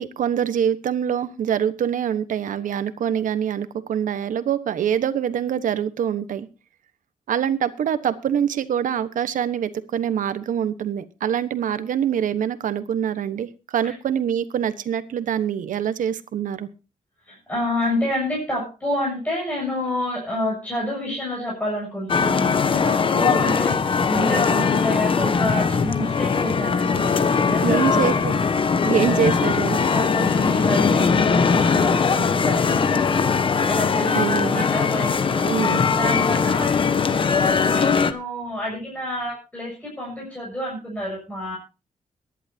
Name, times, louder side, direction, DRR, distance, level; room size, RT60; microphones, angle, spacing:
voice 1, 0.0-6.5 7.3-16.7 27.6-28.3 28.8-29.8 34.1-34.6 35.4-35.8, right 9 dB, 80° right, 12 dB, 1.2 m, -24 dB
voice 2, 17.3-28.2 29.1-29.3 29.9-33.3 33.7-41.6, left 1 dB, 10° left, -4 dB, 7.3 m, -29 dB
sound 1, 22.1-38.1, left 5 dB, 40° left, 1.0 m, -20 dB
23.0 x 11.0 x 2.8 m, 0.30 s
wide cardioid pair, 130°, 13 cm